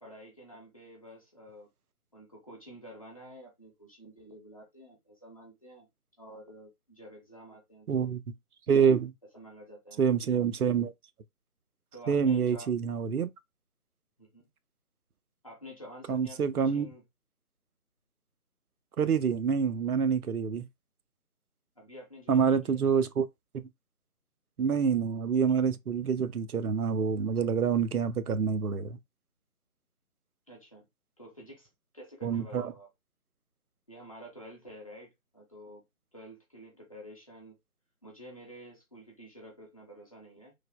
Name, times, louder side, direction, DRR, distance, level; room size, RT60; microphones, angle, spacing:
voice 1, 0.0-1.7 2.1-5.9 6.2-8.1 8.7-9.0 9.3-10.0 11.9-12.7 14.2-14.5 15.4-17.0 21.8-23.0 30.5-30.8 31.2-31.7 31.9-32.9 33.9-35.8 36.1-37.6 38.0-40.5, equal, 25° left, 0.7 m, -49 dB
voice 2, 7.9-8.2 8.7-9.1 10.0-10.9 12.1-13.3 16.1-16.9 19.0-20.7 22.3-23.2 23.5-23.6 24.6-29.0 32.2-32.7, right 6 dB, 85° right, 0.5 m, -27 dB
3.2 x 2.0 x 2.2 m
figure-of-eight pair, 155°, 43 cm